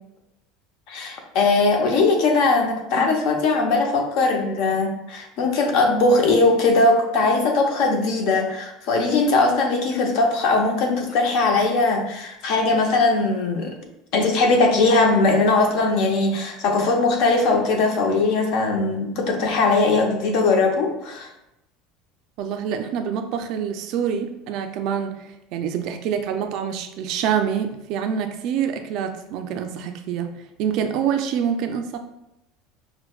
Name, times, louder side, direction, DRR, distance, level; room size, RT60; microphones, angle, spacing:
voice 1, 0.9-13.7 14.1-21.3, left 3 dB, 60° left, 3 dB, 0.7 m, -20 dB
voice 2, 22.4-32.0, right 8 dB, 50° right, 6 dB, 0.4 m, -26 dB
5.8 x 2.1 x 2.3 m, 0.86 s
cardioid pair, 155°, 0 cm